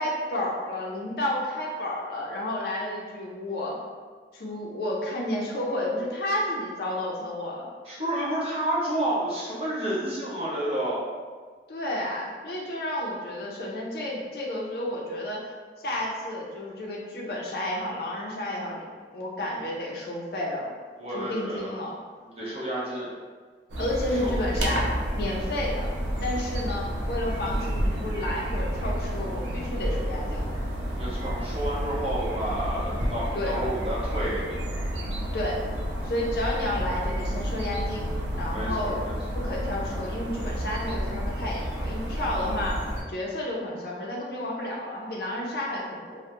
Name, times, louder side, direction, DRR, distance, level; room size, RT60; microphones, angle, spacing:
voice 1, 0.0-3.8 4.3-7.7 11.7-15.5 15.8-18.8 19.1-20.7 21.1-22.0 23.8-25.9 26.2-30.4 33.3-33.6 35.3-35.6 36.0-38.1 38.4-39.0 39.3-46.2, left 1 dB, 60° left, -2 dB, 0.4 m, -31 dB
voice 2, 7.8-11.0 21.0-21.7 22.2-23.1 24.1-24.3 31.0-34.6 38.5-39.1, right 1 dB, 35° right, -8 dB, 0.7 m, -30 dB
sound 1, 23.7-43.0, equal, 90° right, 0.5 m, -30 dB
2.2 x 2.0 x 2.8 m, 1.5 s
head